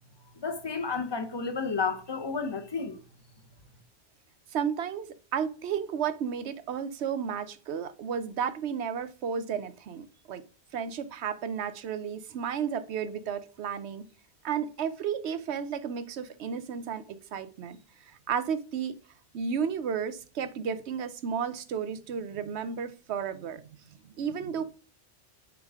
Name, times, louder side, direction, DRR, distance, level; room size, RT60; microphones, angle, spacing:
voice 1, 0.3-3.0, left 5 dB, 30° left, 0.6 m, -31 dB
voice 2, 4.5-10.4 10.7-14.0 14.4-17.8 18.3-19.0 19.3-23.6 24.0-24.6, right 7 dB, 85° right, 1.0 m, -33 dB
9.6 x 3.7 x 3.6 m
omnidirectional pair, 1.1 m